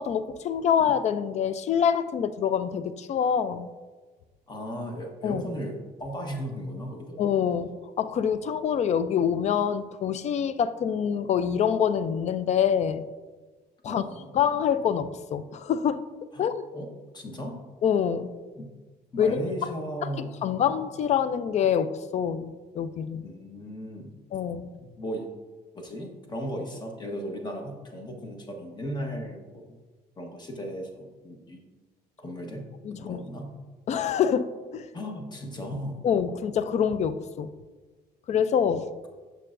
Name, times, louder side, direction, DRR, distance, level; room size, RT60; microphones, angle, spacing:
voice 1, 0.0-3.7 5.2-5.4 7.2-13.1 13.8-14.0 14.3-16.0 16.4-16.6 17.8-18.3 19.2-19.7 20.0-20.1 20.4-23.2 24.3-24.7 32.8-33.2 33.9-34.9 36.0-37.5 38.3-38.9, left 8 dB, 40° left, 14 dB, 0.4 m, -26 dB
voice 2, 4.5-7.2 13.8-14.3 16.3-16.5 16.7-16.9 17.1-17.6 18.6-18.7 19.1-20.7 23.2-24.2 24.8-25.3 25.7-29.8 30.2-31.6 32.2-32.7 33.0-33.5 34.9-36.0, equal, 25° left, 3 dB, 1.1 m, -36 dB
6.6 x 6.5 x 2.5 m, 1.3 s
cardioid pair, 110°, 17 cm